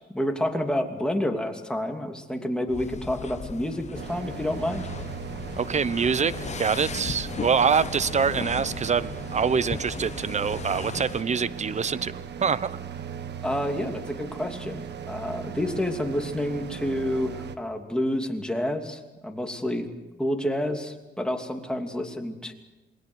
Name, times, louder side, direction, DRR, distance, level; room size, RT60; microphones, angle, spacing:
voice 1, 0.1-4.9 13.4-19.9 20.2-22.5, left 1 dB, 5° left, 3 dB, 2.9 m, -29 dB
sound 1, 2.7-11.2, left 6 dB, 35° left, 0.9 m, -37 dB
sound 2, 3.9-17.6, right 7 dB, 60° right, 1.6 m, -38 dB
voice 2, 5.6-12.1 12.4-12.8, right 6 dB, 35° right, 17 dB, 0.9 m, -25 dB
28.0 x 20.5 x 6.5 m, 1.1 s
cardioid pair, 90°, 20 cm